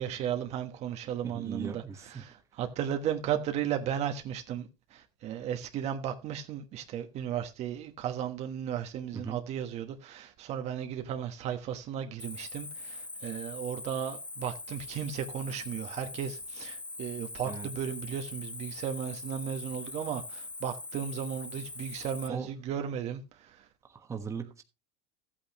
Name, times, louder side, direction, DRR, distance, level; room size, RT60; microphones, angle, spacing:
voice 1, 0.0-1.8 2.2-23.2, right 9 dB, 45° right, 1.2 m, -35 dB
voice 2, 1.2-2.2 9.1-9.4 17.4-17.7 22.3-22.5 23.9-24.6, right 5 dB, 20° right, 1.3 m, -39 dB
Cricket, 12.2-22.3, left 2 dB, 10° left, 0.6 m, -42 dB
14.0 x 8.7 x 3.0 m
supercardioid pair, 135°, 16 cm